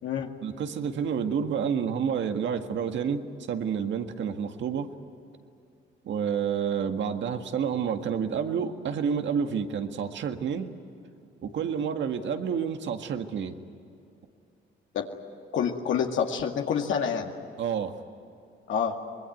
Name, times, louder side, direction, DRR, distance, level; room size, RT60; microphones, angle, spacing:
voice 1, 0.4-4.9 6.1-10.7 11.4-13.6 17.6-17.9, right 7 dB, 70° right, 6 dB, 1.8 m, -29 dB
voice 2, 15.5-17.3 18.7-18.9, left 7 dB, 75° left, 2 dB, 2.1 m, -27 dB
25.0 x 21.5 x 9.3 m, 2.6 s
cardioid pair, 90°, 20 cm